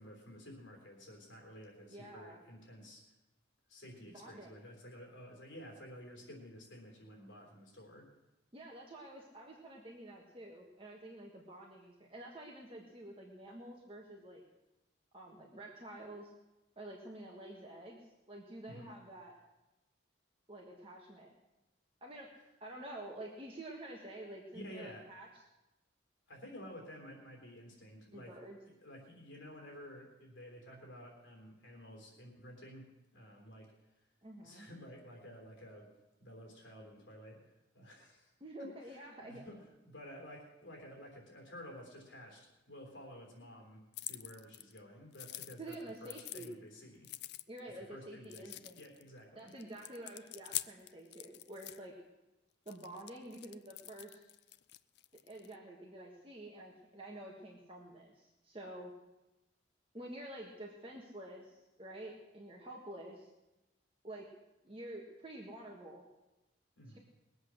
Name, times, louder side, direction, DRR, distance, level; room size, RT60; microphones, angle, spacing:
voice 1, 0.0-3.0 3.7-8.1 18.7-18.9 24.5-25.0 26.3-28.4 28.6-33.7 34.4-35.9 36.2-37.4 37.7-38.3 38.6-47.1 47.9-49.5 66.8-67.0, equal, 75° left, 0 dB, 3.5 m, -52 dB
voice 2, 1.9-2.4 4.1-4.5 8.5-14.4 15.1-16.3 16.8-18.0 18.3-19.4 20.5-21.3 22.0-22.3 22.6-25.4 28.1-28.6 34.2-34.7 38.4-39.4 45.6-46.5 47.5-48.7 49.3-51.9 52.6-54.2 55.3-58.9 59.9-63.3 64.0-64.3 64.6-66.0 66.9-67.0, right 1 dB, 30° right, -2 dB, 1.5 m, -49 dB
sound 1, 43.9-44.8 45.1-46.5 47.0-47.7 48.2-49.1 49.5-51.8 52.7-55.6, left 15 dB, 60° left, 0.4 m, -45 dB
20.5 x 8.0 x 6.4 m, 1.0 s
head